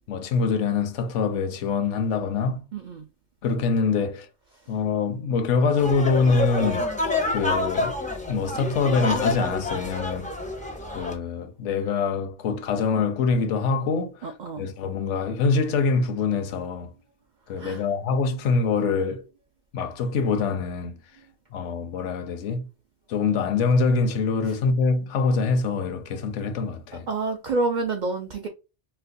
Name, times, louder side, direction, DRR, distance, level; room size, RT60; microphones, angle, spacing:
voice 1, 0.1-2.6 3.4-4.3 4.7-6.9 7.3-8.0 8.3-10.3 10.9-16.9 17.5-19.3 19.7-21.0 21.5-22.7 23.1-27.1, left 4 dB, 75° left, 0.9 m, -24 dB
voice 2, 2.7-3.0 14.2-14.6 17.6-17.8 27.1-28.5, right 3 dB, 60° right, 0.4 m, -28 dB
sound 1, 5.8-11.2, left 2 dB, 15° left, 0.3 m, -28 dB
4.4 x 2.1 x 2.6 m
omnidirectional pair, 1.3 m